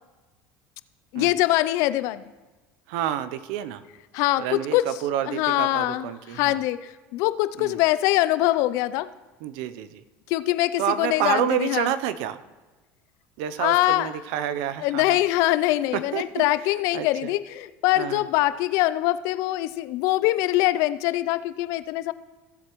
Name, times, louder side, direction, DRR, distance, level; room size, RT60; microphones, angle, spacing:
voice 1, 1.1-2.2 4.1-4.8 5.3-9.1 10.3-11.9 13.6-14.1 14.8-22.1, left 16 dB, 70° left, 15 dB, 0.4 m, -23 dB
voice 2, 2.9-3.8 4.4-6.6 7.6-7.8 9.4-10.0 10.8-12.4 13.4-15.2 15.9-16.4 16.9-17.3 18.0-18.2, right 11 dB, 75° right, 13 dB, 0.6 m, -29 dB
15.5 x 7.5 x 3.0 m, 1.2 s
supercardioid pair, 115°, 6 cm